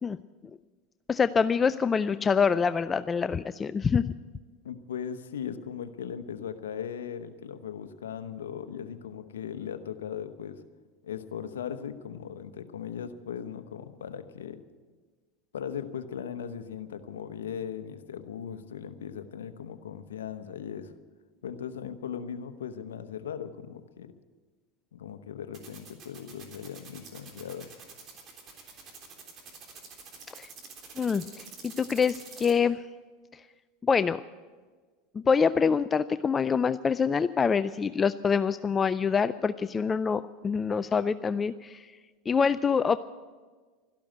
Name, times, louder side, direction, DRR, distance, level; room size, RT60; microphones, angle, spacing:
voice 1, 1.1-4.1 30.3-30.5 31.0-32.8 33.3-33.4 33.8-34.2 35.1-41.9 42.3-43.0, left 6 dB, 25° left, 14 dB, 0.4 m, -26 dB
voice 2, 4.6-10.6 11.0-14.6 15.5-20.9 21.4-24.1 24.9-27.7, left 8 dB, 90° left, 9 dB, 0.9 m, -38 dB
sound 1, 25.5-32.5, right 6 dB, 45° right, 3.4 m, -47 dB
13.0 x 12.0 x 9.1 m, 1.4 s
hypercardioid pair, 95°, 0 cm